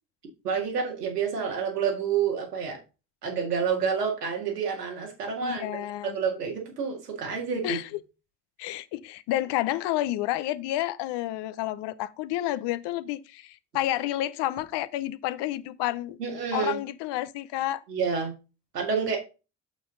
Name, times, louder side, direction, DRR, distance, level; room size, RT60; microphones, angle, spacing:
voice 1, 0.4-2.8 3.2-7.8 16.2-16.8 17.9-18.3 18.7-19.2, right 6 dB, 90° right, 2.0 m, -29 dB
voice 2, 5.4-6.2 7.6-8.0 8.6-16.2 16.5-17.8, left 14 dB, 65° left, 0.8 m, -30 dB
6.9 x 6.2 x 3.8 m
hypercardioid pair, 50°, 46 cm